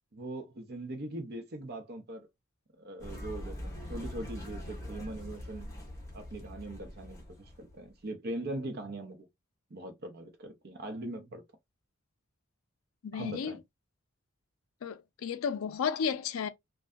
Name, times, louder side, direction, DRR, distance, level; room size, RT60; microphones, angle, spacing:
voice 1, 0.1-2.3 2.8-5.7 6.1-9.2 9.7-11.4 13.1-13.6, right 1 dB, 50° right, 0.7 m, -41 dB
sound 1, 3.0-7.9, left 1 dB, 15° left, 0.9 m, -43 dB
voice 2, 13.0-13.6 14.8-16.5, left 6 dB, 85° left, 0.4 m, -33 dB
2.6 x 2.2 x 2.3 m
head